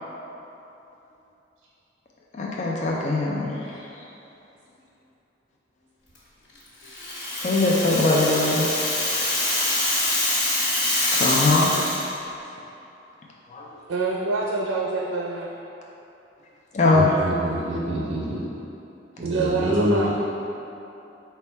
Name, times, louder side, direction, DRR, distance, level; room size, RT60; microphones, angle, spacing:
voice 1, 2.3-4.0 7.4-9.4 11.1-11.7 13.5-13.7 16.7-17.1, left 2 dB, 35° left, -3 dB, 0.4 m, -22 dB
Rattle (instrument), 6.8-12.1, left 1 dB, 60° left, 1.2 m, -25 dB
voice 2, 13.9-15.6 19.2-20.1, right 3 dB, 90° right, -2 dB, 0.4 m, -26 dB
voice 3, 16.9-18.4 19.2-20.1, equal, 35° right, -5 dB, 0.5 m, -26 dB
4.4 x 2.2 x 4.3 m, 2.9 s
head